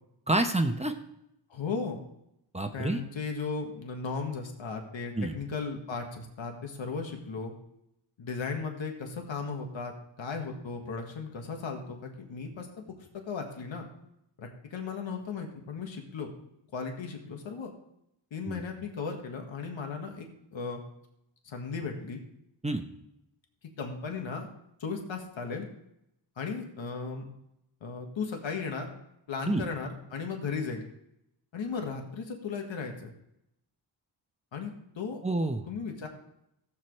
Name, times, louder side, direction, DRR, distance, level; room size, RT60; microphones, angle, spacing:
voice 1, 0.3-0.9 2.5-3.0 5.1-5.3 18.5-18.6 22.6-22.8 29.5-29.6 35.2-35.7, right 2 dB, 15° right, 6 dB, 0.9 m, -28 dB
voice 2, 1.5-2.0 2.7-7.5 8.2-13.9 14.4-16.3 16.7-17.7 18.3-20.8 21.4-22.2 23.8-24.5 24.8-25.7 26.4-27.2 27.8-28.9 29.3-30.8 31.5-33.1 34.5-35.2 35.7-36.1, left 5 dB, 80° left, 3 dB, 1.7 m, -36 dB
16.5 x 7.6 x 3.2 m, 0.81 s
cardioid pair, 75°, 45 cm